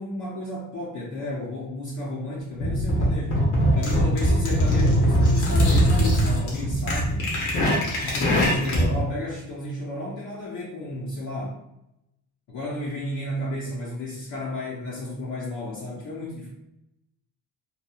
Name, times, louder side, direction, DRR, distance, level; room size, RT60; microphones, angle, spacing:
voice 1, 0.0-3.4 3.7-7.4 7.9-11.6 12.5-16.5, left 1 dB, 45° left, -5 dB, 0.7 m, -32 dB
sound 1, 2.6-9.0, equal, 75° left, 1.1 m, -21 dB
3.0 x 2.2 x 2.3 m, 0.86 s
cardioid pair, 120°, 40 cm